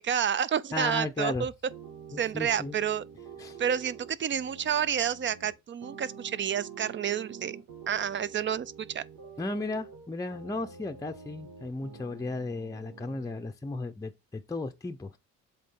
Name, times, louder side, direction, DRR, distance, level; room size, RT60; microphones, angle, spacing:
voice 1, 0.0-1.5 2.2-3.0 3.6-7.6 7.9-9.0, right 8 dB, 40° right, 0.5 m, -29 dB
voice 2, 0.7-1.5 2.1-2.8 3.4-3.6 9.4-15.2, left 2 dB, 10° left, 0.6 m, -35 dB
sound 1, 1.7-13.5, right 6 dB, 80° right, 1.8 m, -47 dB
7.6 x 3.8 x 3.7 m
cardioid pair, 90°, 30 cm